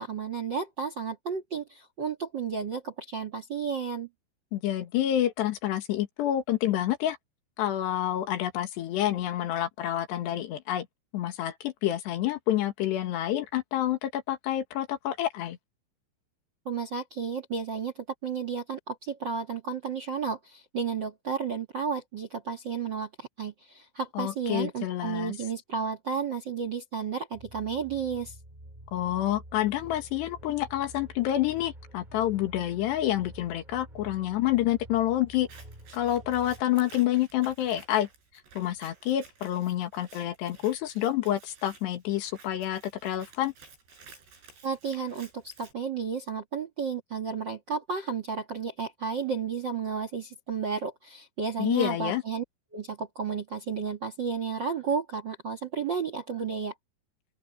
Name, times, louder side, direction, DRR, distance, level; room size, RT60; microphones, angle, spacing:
voice 1, 0.0-4.1 16.6-28.4 44.6-52.4 52.7-56.7, right 6 dB, 65° right, 1.1 m, -32 dB
voice 2, 4.5-7.2 7.6-10.9 11.1-15.6 24.2-25.3 28.9-35.5 35.9-38.1 38.6-43.5 51.6-52.2, left 12 dB, 85° left, 3.9 m, -28 dB
sound 1, 27.3-36.6, right 1 dB, 10° right, 4.5 m, -49 dB
Scissors, 35.3-45.7, right 4 dB, 80° right, 9.5 m, -54 dB
open air
omnidirectional pair, 4.8 m